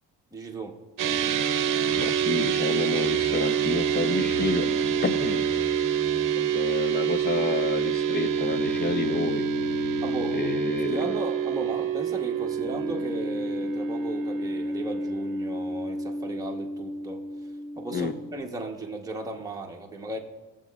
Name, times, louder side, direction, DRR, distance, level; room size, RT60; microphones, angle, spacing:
voice 1, 0.3-0.8 10.0-10.5 10.9-17.2 17.8-20.2, right 2 dB, 10° right, 0 dB, 0.9 m, -36 dB
sound 1, 1.0-18.4, right 6 dB, 50° right, 0.8 m, -27 dB
voice 2, 1.9-4.7 5.0-5.4 6.3-9.4 10.3-11.1 17.9-18.1, left 4 dB, 25° left, 12 dB, 0.5 m, -29 dB
17.5 x 7.2 x 2.4 m, 1.2 s
cardioid pair, 115°, 40 cm